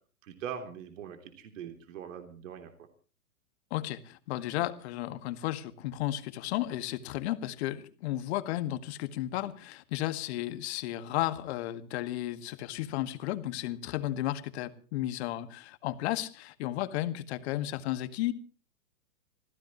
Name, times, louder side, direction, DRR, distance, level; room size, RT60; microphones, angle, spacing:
voice 1, 0.2-2.7, right 8 dB, 60° right, 6 dB, 3.3 m, -42 dB
voice 2, 3.7-18.3, left 14 dB, 50° left, 11 dB, 1.9 m, -33 dB
26.5 x 15.5 x 3.1 m, 0.39 s
hypercardioid pair, 130°, 43 cm